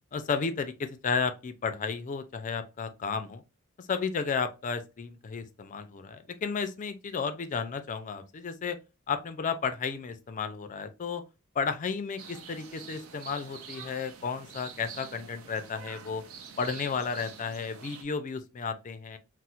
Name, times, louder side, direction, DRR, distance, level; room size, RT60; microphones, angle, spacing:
voice 1, 0.1-3.4 3.8-8.8 9.1-11.2 11.6-16.2 16.6-19.2, left 5 dB, 35° left, 0.4 m, -33 dB
sound 1, 12.2-18.0, right 6 dB, 70° right, 0.5 m, -46 dB
4.2 x 2.0 x 2.4 m
head